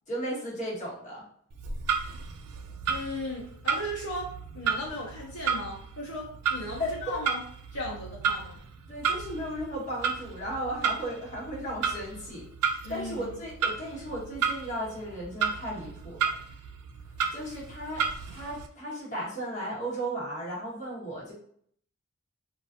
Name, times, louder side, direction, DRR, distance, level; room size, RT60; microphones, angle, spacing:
voice 1, 0.1-1.2 6.8-7.2 8.9-12.5 12.9-16.3 17.3-21.3, equal, 35° left, -6 dB, 1.1 m, -35 dB
Clock, 1.5-18.7, right 6 dB, 75° right, 0.3 m, -33 dB
voice 2, 2.9-7.4 7.7-8.6 12.8-13.4, left 1 dB, 75° left, -4 dB, 0.6 m, -37 dB
2.4 x 2.3 x 2.5 m, 0.62 s
head